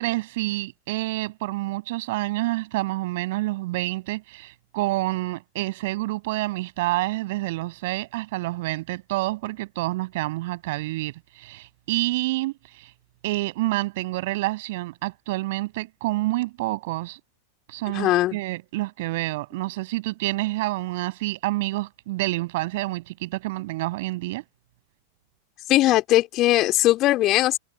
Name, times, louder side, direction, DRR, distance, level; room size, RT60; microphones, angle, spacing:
voice 1, 0.0-12.9 13.2-17.2 17.7-24.4, right 19 dB, 50° right, 6.6 m, -28 dB
voice 2, 17.9-18.4 25.7-27.6, left 16 dB, 35° left, 3.2 m, -20 dB
figure-of-eight pair, 90°, 0 cm